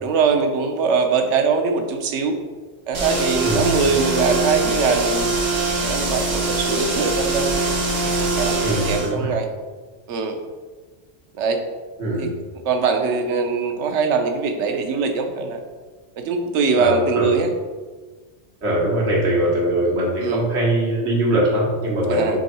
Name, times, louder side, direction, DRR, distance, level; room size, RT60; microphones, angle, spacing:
voice 1, 0.0-2.4 2.9-5.3 5.8-7.5 8.0-9.5 10.1-10.4 11.3-11.6 12.2-12.3 12.7-15.6 16.2-17.5 20.2-20.4 22.1-22.4, right 5 dB, 90° right, 5 dB, 0.9 m, -22 dB
sound 1, 2.9-9.1, right 2 dB, 45° right, 0.8 m, -23 dB
voice 2, 3.4-3.7 8.6-9.3 12.0-12.3 16.8-17.4 18.6-22.4, right 1 dB, 75° right, -3 dB, 1.4 m, -21 dB
3.7 x 3.4 x 4.1 m, 1.4 s
omnidirectional pair, 1.2 m